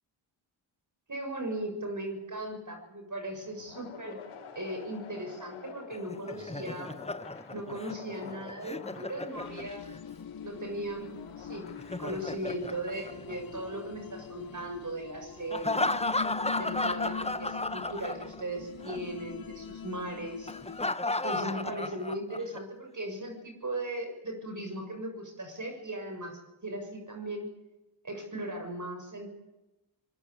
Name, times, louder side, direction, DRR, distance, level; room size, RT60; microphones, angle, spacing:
voice 1, 1.1-4.2 4.6-6.9 7.5-9.9 10.4-11.7 12.0-16.1 16.5-20.5 21.2-27.5 28.0-29.3, right 1 dB, 35° right, 4 dB, 7.1 m, -38 dB
sound 1, 3.3-15.6, left 6 dB, 85° left, 7.0 m, -50 dB
Laughter, 5.9-10.0 11.7-13.8 15.5-18.6 18.8-19.0 20.5-22.6, left 2 dB, 10° left, 1.4 m, -34 dB
sound 2, 9.3-20.9, left 7 dB, 45° left, 1.2 m, -43 dB
24.0 x 20.5 x 8.3 m, 1.0 s
supercardioid pair, 50°, 50 cm